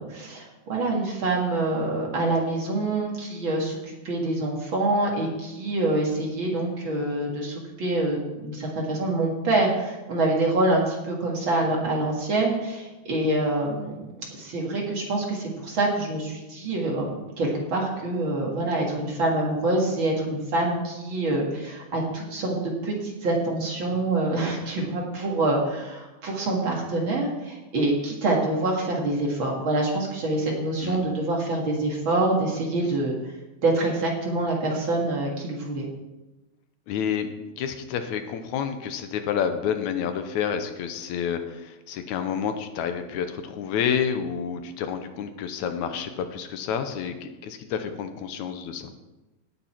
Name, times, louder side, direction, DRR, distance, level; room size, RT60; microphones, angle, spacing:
voice 1, 0.0-17.1 17.4-22.6 22.8-33.2 33.6-35.9, right 2 dB, 45° right, -1 dB, 2.4 m, -26 dB
voice 2, 36.9-37.3 37.6-48.9, left 7 dB, 85° left, 8 dB, 2.2 m, -29 dB
17.5 x 6.9 x 4.4 m, 1.1 s
omnidirectional pair, 3.4 m